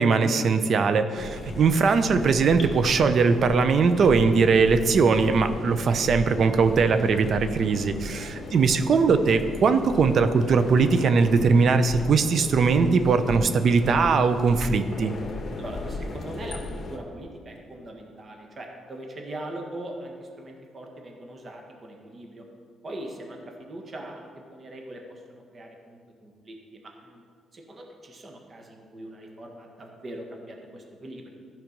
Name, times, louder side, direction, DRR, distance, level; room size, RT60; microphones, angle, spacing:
voice 1, 0.0-15.1, right 4 dB, 55° right, 10 dB, 0.7 m, -20 dB
sound 1, 1.2-17.0, left 2 dB, 45° left, 1.3 m, -36 dB
voice 2, 8.1-8.5 15.6-22.4 22.8-27.2 27.5-31.3, right 1 dB, 35° right, 1 dB, 1.6 m, -41 dB
14.0 x 5.9 x 5.2 m, 2.1 s
cardioid pair, 90°, 0 cm